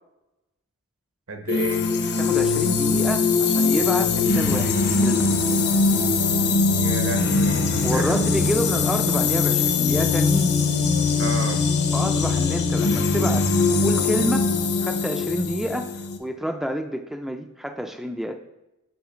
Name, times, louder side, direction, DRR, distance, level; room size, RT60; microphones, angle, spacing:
voice 1, 1.3-1.9 6.8-8.1 11.2-11.6, right 2 dB, 75° right, 4 dB, 1.0 m, -30 dB
sound 1, 1.5-16.2, left 4 dB, 50° left, 0.7 m, -21 dB
voice 2, 2.2-5.3 7.8-10.5 11.9-14.5 14.8-18.4, equal, ahead, 5 dB, 0.3 m, -28 dB
7.8 x 2.9 x 5.0 m, 0.94 s
head